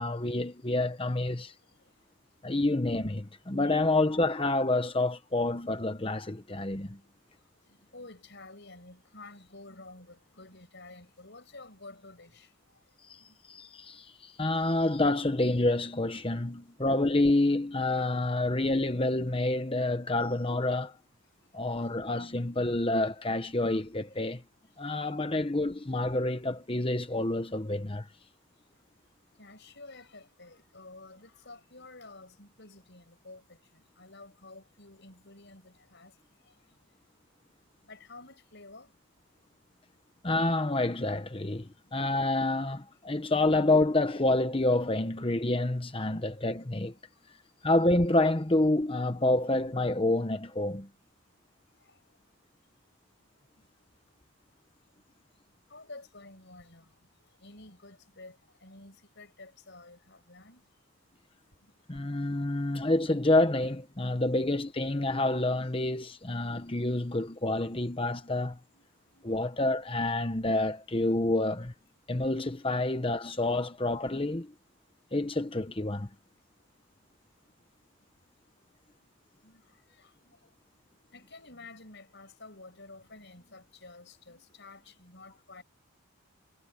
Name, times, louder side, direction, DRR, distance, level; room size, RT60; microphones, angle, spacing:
voice 1, 0.0-1.5 2.4-7.0 13.1-13.2 13.5-21.0 21.5-24.4 24.8-28.1 40.2-46.9 47.6-50.9 61.9-68.6 69.2-71.7 72.1-74.5 75.1-76.1, left 2 dB, 25° left, 1.0 m, -28 dB
voice 2, 1.6-2.1 3.6-3.8 7.0-13.4 16.1-16.8 21.3-22.2 24.7-24.9 28.6-28.7 29.4-36.8 37.8-38.9 41.6-41.9 45.9-46.5 47.1-47.3 51.7-52.0 53.5-53.7 55.5-60.6 61.6-62.0 65.9-66.0 68.2-69.5 77.8-78.0 79.0-79.1 79.4-80.5 81.1-85.6, left 2 dB, 50° left, 6.6 m, -52 dB
head